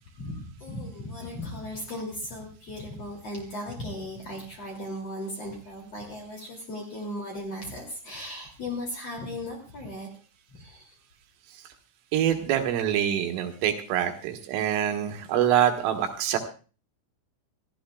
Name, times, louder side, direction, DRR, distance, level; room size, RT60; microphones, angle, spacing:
voice 1, 0.2-10.1 10.5-10.9, left 1 dB, 35° left, 0 dB, 3.0 m, -37 dB
voice 2, 12.1-16.4, right 10 dB, 80° right, 5 dB, 3.9 m, -25 dB
27.0 x 15.5 x 2.3 m, 0.36 s
omnidirectional pair, 5.9 m